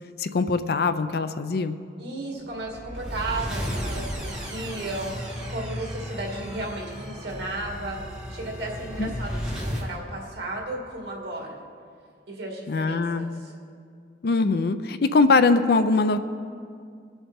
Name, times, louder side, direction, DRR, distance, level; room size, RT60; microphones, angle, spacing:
voice 1, 0.2-1.7 9.0-9.1 12.7-13.4 14.2-16.2, left 3 dB, 60° left, 11 dB, 0.5 m, -22 dB
voice 2, 2.0-8.0 8.3-11.6 12.3-13.5, right 2 dB, 75° right, -1 dB, 2.2 m, -34 dB
sound 1, 2.5-9.9, equal, 5° right, 1.7 m, -34 dB
20.5 x 7.2 x 3.5 m, 2.3 s
head